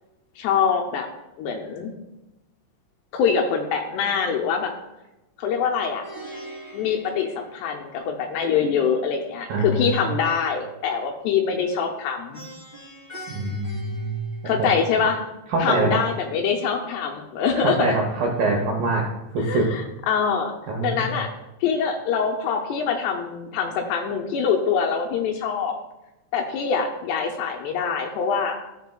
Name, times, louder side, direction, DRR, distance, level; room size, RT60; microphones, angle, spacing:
voice 1, 0.4-1.1 1.4-1.9 3.1-4.7 5.4-6.0 6.7-12.4 14.5-15.2 15.6-17.8 19.4-19.8 20.1-20.5 20.8-21.3 21.6-25.8 26.3-28.6, left 6 dB, 80° left, 3 dB, 2.6 m, -24 dB
Plucked string instrument, 6.0-8.2 12.3-14.9, right 1 dB, 40° left, 0.6 m, -42 dB
voice 2, 9.5-10.0 13.3-14.5 15.5-16.0 17.5-19.0 19.3-19.7 20.7-21.2, right 2 dB, 80° right, -1 dB, 2.0 m, -24 dB
13.0 x 4.9 x 2.2 m, 0.97 s
omnidirectional pair, 5.1 m